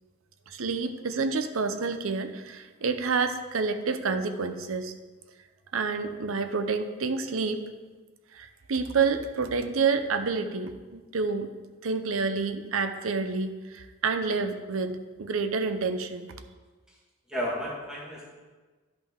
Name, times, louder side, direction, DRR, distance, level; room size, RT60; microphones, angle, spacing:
voice 1, 0.5-4.9 5.7-7.6 8.3-11.5 11.8-16.3, right 4 dB, 70° right, 8 dB, 0.6 m, -28 dB
voice 2, 17.3-18.3, equal, 5° right, -6 dB, 1.7 m, -33 dB
11.0 x 5.4 x 3.6 m, 1.3 s
head